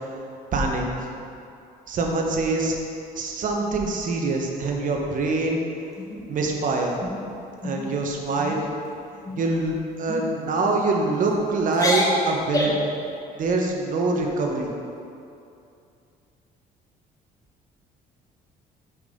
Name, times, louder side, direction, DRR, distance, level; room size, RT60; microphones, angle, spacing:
voice 1, 0.5-1.2 1.9-2.7 3.1-5.6 6.3-7.1 7.6-8.7 9.4-12.7 13.4-14.7, right 3 dB, 50° right, 1 dB, 1.0 m, -24 dB
sound 1, 6.0-6.6 7.0-7.2 7.6-7.9 8.3-8.6 9.2-9.6 10.1-10.3 11.0-11.3 11.7-12.9, left 1 dB, 20° left, 1.0 m, -27 dB
6.0 x 5.4 x 3.6 m, 2.6 s
cardioid pair, 110°, 17 cm